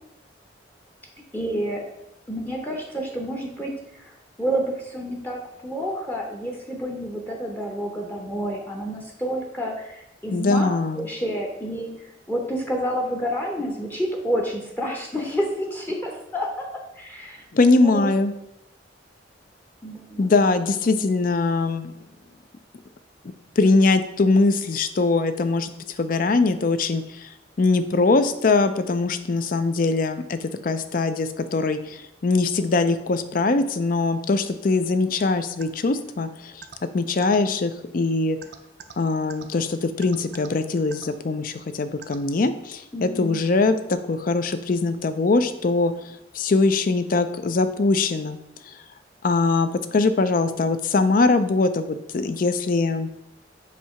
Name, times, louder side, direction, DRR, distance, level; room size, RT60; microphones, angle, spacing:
voice 1, 1.3-1.8 2.3-10.7 10.9-17.4 17.8-18.1 19.8-20.3 42.9-43.4, equal, 10° left, 0 dB, 0.7 m, -29 dB
voice 2, 10.3-11.0 17.5-18.3 20.2-21.9 23.6-25.7 26.0-27.3 27.6-36.6 36.9-38.4 39.0-48.4 48.7-48.8 49.2-53.1, left 3 dB, 45° left, 11 dB, 0.4 m, -22 dB
sound 1, 35.6-35.7 36.6-36.8 37.2-37.4 38.4-38.9 39.3-39.4 40.0-40.5 40.9-41.1 42.0-42.2, right 6 dB, 60° right, 0.6 m, -40 dB
7.3 x 2.8 x 5.6 m, 0.84 s
head